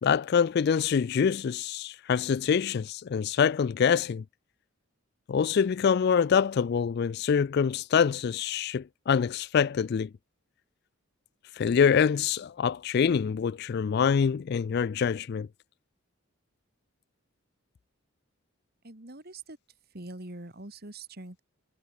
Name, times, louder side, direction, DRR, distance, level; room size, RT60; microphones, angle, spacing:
voice 1, 0.0-4.2 5.3-10.1 11.6-15.5, left 7 dB, 50° left, 0.3 m, -25 dB
voice 2, 18.8-19.6 19.9-21.4, right 2 dB, 45° right, 2.5 m, -43 dB
head